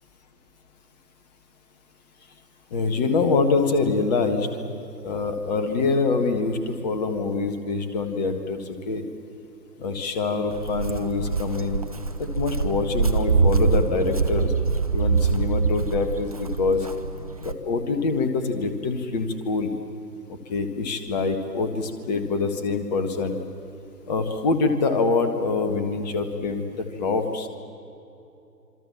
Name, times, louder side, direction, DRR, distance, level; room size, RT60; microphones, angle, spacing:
voice 1, 2.7-4.5 5.0-9.0 9.8-11.8 12.2-14.5 14.9-16.9 17.4-19.7 20.5-23.4 24.1-27.5, left 4 dB, 25° left, 8 dB, 1.7 m, -25 dB
Walk footsteps, 10.5-17.5, right 4 dB, 25° right, 0.5 m, -24 dB
26.5 x 25.0 x 7.3 m, 2.8 s
figure-of-eight pair, 135°, 50 cm